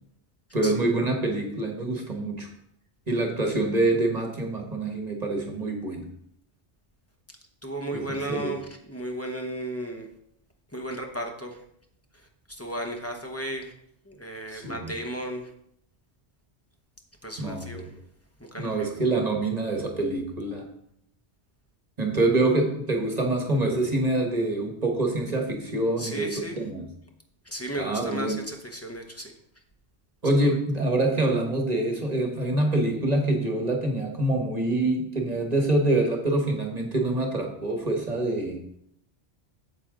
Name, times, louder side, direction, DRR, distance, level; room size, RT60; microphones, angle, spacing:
voice 1, 0.5-2.5 3.1-6.1 7.9-8.5 14.5-14.9 17.4-17.9 18.6-20.6 22.0-26.9 27.8-28.4 30.2-38.6, right 2 dB, 40° right, 2 dB, 1.4 m, -26 dB
voice 2, 7.6-10.1 10.7-11.6 12.1-13.7 14.1-15.5 17.2-17.9 18.4-18.9 26.0-26.6 27.4-29.3, right 1 dB, 15° left, 2 dB, 0.9 m, -34 dB
8.3 x 7.6 x 3.8 m, 0.72 s
omnidirectional pair, 1.1 m